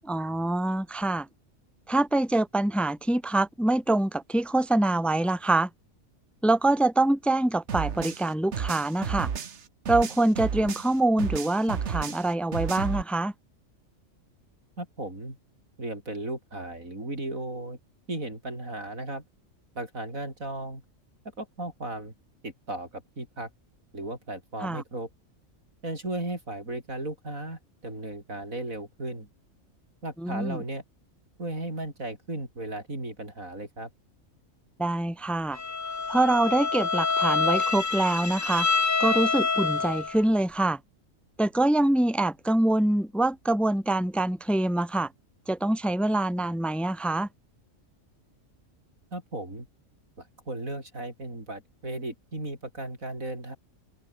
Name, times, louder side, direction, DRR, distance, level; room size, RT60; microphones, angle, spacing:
voice 1, 0.0-1.3 1.9-5.7 6.4-9.3 9.9-13.3 24.6-24.8 30.2-30.6 34.8-35.6 36.1-38.7 39.0-40.8 41.4-45.1 45.5-47.3, right 2 dB, ahead, 1.4 m, -25 dB
sound 1, 7.7-10.9 11.2-13.0, right 7 dB, 60° right, 1.5 m, -32 dB
voice 2, 14.8-15.4 15.8-17.8 18.1-19.2 19.8-20.8 21.4-22.1 22.4-23.5 23.9-25.1 25.8-29.3 30.0-30.8 31.4-33.9 49.1-49.7 50.2-53.6, right 2 dB, 85° right, 7.8 m, -35 dB
Bowed string instrument, 35.5-40.2, left 4 dB, 40° left, 1.6 m, -27 dB
open air
omnidirectional pair, 1.4 m